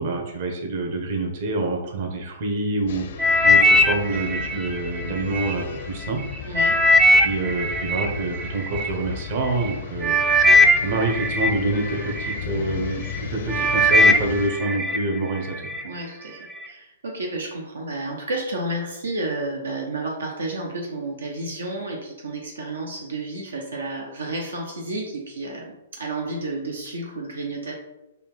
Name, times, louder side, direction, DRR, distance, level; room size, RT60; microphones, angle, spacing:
voice 1, 0.0-6.2 7.1-10.2 10.8-15.5, right 2 dB, 50° right, 1 dB, 0.9 m, -27 dB
sound 1, 2.9-14.5, left 7 dB, 60° left, 0.5 m, -35 dB
sound 2, 3.2-5.5 6.1-8.9 9.6-9.7 10.0-12.4 12.9-13.2 13.5-15.0 15.4-15.8 16.4-16.5, left 1 dB, 10° right, 0.4 m, -19 dB
voice 2, 6.4-6.8 15.8-27.7, right 2 dB, 85° right, 0 dB, 0.6 m, -31 dB
4.1 x 2.4 x 3.5 m, 0.96 s
hypercardioid pair, 125°, 0 cm